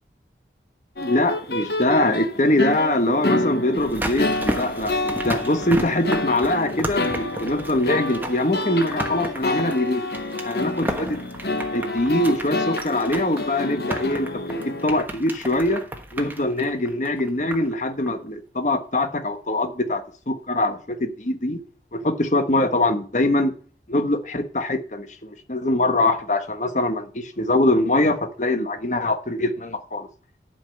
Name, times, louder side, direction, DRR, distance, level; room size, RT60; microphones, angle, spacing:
sound 1, 1.0-14.9, left 2 dB, 60° left, 1.3 m, -28 dB
voice 1, 1.0-10.1 10.4-11.2 11.7-15.8 16.1-21.6 22.0-23.5 23.9-30.1, left 1 dB, 40° left, 1.3 m, -23 dB
sound 2, 3.8-17.8 18.1-18.2, right 1 dB, 10° right, 1.3 m, -33 dB
11.0 x 5.6 x 7.7 m
head